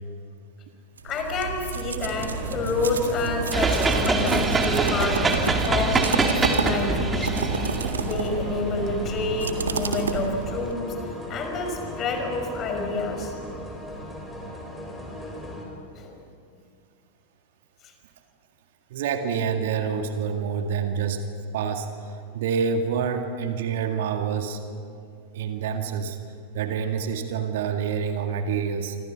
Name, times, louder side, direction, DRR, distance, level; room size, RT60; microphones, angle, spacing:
voice 1, 1.0-5.3 5.6-7.5 8.0-11.0 11.3-13.3 16.0-16.2 17.8-17.9, left 3 dB, 30° left, 4 dB, 5.3 m, -28 dB
sound 1, 1.0-10.7, right 5 dB, 70° right, 1.9 m, -30 dB
sound 2, 2.0-15.6, left 1 dB, 5° left, 5.8 m, -36 dB
sound 3, 3.5-9.8, right 3 dB, 15° right, 2.5 m, -24 dB
voice 2, 18.9-21.2 21.5-24.6 25.3-26.2 26.5-29.0, right 6 dB, 55° right, 6 dB, 2.0 m, -27 dB
28.0 x 25.5 x 6.0 m, 2.4 s
figure-of-eight pair, 90°, 0 cm